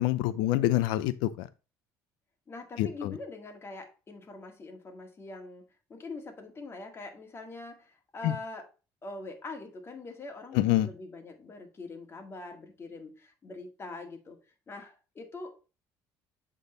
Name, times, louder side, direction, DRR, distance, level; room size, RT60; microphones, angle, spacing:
voice 1, 0.0-1.5 2.8-3.1 8.2-8.3 10.5-10.9, left 15 dB, 85° left, 0.6 m, -26 dB
voice 2, 2.5-5.6 5.9-8.7 9.0-14.4 14.7-15.7, left 3 dB, 35° left, 1.9 m, -43 dB
8.1 x 3.8 x 3.9 m
supercardioid pair, 90°, 8 cm